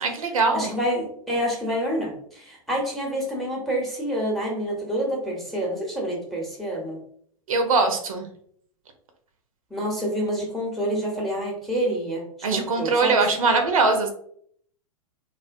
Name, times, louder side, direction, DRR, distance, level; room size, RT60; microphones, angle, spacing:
voice 1, 0.0-0.7 7.5-8.3 12.4-14.1, right 3 dB, 70° right, 5 dB, 0.5 m, -21 dB
voice 2, 0.5-7.0 9.7-12.2 12.5-13.1, equal, ahead, -2 dB, 0.7 m, -27 dB
2.4 x 2.1 x 2.4 m, 0.64 s
figure-of-eight pair, 100°, 18 cm